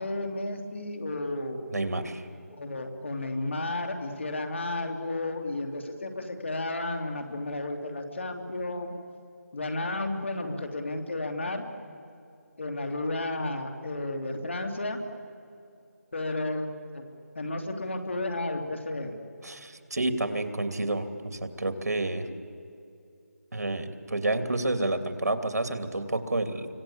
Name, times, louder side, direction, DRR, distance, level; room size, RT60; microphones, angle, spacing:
voice 1, 0.0-1.6 2.5-8.9 9.5-11.6 12.6-15.0 16.1-17.0 17.3-19.2, left 2 dB, 45° left, 5 dB, 2.8 m, -32 dB
voice 2, 1.7-2.2 19.4-22.2 23.5-26.7, right 2 dB, 70° right, 7 dB, 2.7 m, -29 dB
26.0 x 24.5 x 8.8 m, 2.5 s
figure-of-eight pair, 175°, 9 cm